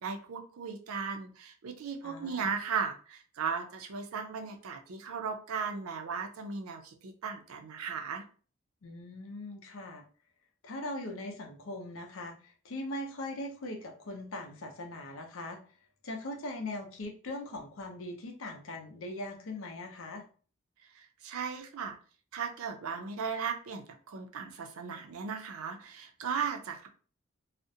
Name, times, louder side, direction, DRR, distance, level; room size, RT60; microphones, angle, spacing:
voice 1, 0.0-8.2 21.0-22.0 22.3-26.9, right 6 dB, 90° right, 4 dB, 0.5 m, -36 dB
voice 2, 2.0-2.5 8.8-10.0 10.6-15.6 16.0-20.2, left 1 dB, 75° left, 3 dB, 0.6 m, -40 dB
2.4 x 2.0 x 2.6 m, 0.40 s
head